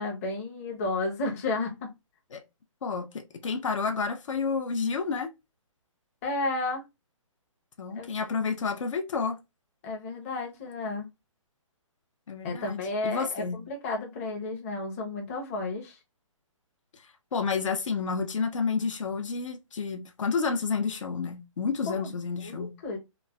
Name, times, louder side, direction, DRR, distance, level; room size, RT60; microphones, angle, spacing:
voice 1, 0.0-1.9 6.2-6.8 7.9-8.1 9.8-11.1 12.4-16.0 21.9-22.1 22.4-23.0, left 2 dB, 25° left, 0.7 m, -32 dB
voice 2, 2.8-5.3 7.8-9.4 12.3-13.6 17.3-22.7, left 5 dB, 65° left, 0.6 m, -30 dB
3.0 x 2.1 x 2.3 m
hypercardioid pair, 160°, 17 cm